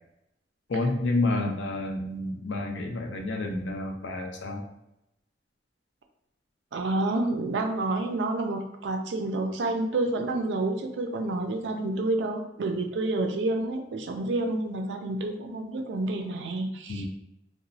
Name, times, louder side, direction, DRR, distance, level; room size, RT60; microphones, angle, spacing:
voice 1, 0.7-4.6 16.9-17.1, left 2 dB, 85° left, 2 dB, 0.5 m, -29 dB
voice 2, 6.7-17.1, right 2 dB, 70° right, 4 dB, 0.4 m, -29 dB
2.9 x 2.1 x 2.6 m, 0.86 s
head